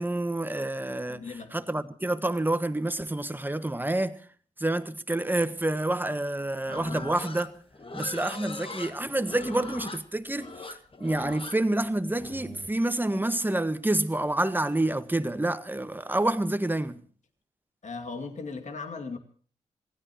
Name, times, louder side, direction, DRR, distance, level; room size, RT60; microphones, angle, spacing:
voice 1, 0.0-4.3 4.6-7.5 7.9-17.0, right 1 dB, 15° right, 1.5 m, -28 dB
voice 2, 1.1-1.5 17.8-19.2, left 4 dB, 55° left, 2.4 m, -37 dB
Livestock farm animals working animals, 6.7-12.7, left 3 dB, 40° left, 1.9 m, -40 dB
26.5 x 17.0 x 3.0 m
cardioid pair, 60°, 15 cm